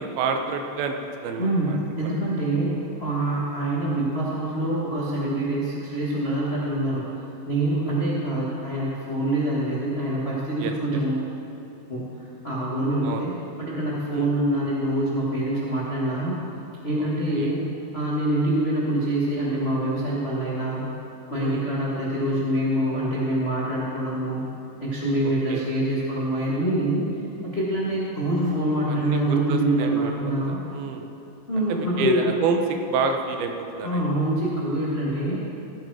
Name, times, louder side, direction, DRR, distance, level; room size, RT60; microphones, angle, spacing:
voice 1, 0.0-1.8 10.6-10.7 13.0-13.2 14.1-14.3 17.0-17.1 17.4-17.6 21.4-21.7 25.2-25.6 28.8-30.3 30.7-31.0 31.7-32.6 32.9-33.5 33.8-34.0, right 5 dB, 80° right, 5 dB, 2.7 m, -28 dB
voice 2, 1.4-7.1 7.5-11.3 11.9-13.3 13.6-16.3 16.8-20.9 21.3-24.4 24.8-27.1 27.4-30.6 31.5-32.3 33.8-35.4, right 1 dB, 75° left, -7 dB, 0.5 m, -25 dB
16.0 x 9.2 x 4.8 m, 2.8 s
omnidirectional pair, 4.4 m